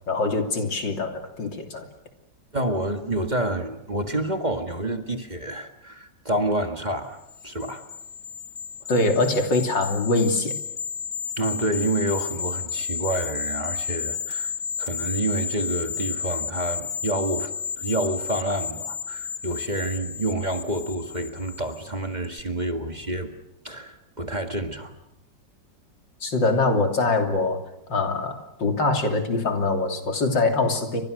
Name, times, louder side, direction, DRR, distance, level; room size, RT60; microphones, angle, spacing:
voice 1, 0.1-1.9 8.9-10.6 26.2-27.6 27.9-31.0, left 3 dB, 90° left, 4 dB, 3.7 m, -23 dB
voice 2, 2.5-7.9 11.4-23.3 23.6-24.9, right 1 dB, 25° right, 6 dB, 1.8 m, -28 dB
sound 1, 7.3-21.9 22.2-22.4, left 6 dB, 30° left, 1.3 m, -32 dB
29.5 x 25.0 x 6.6 m, 0.84 s
omnidirectional pair, 1.9 m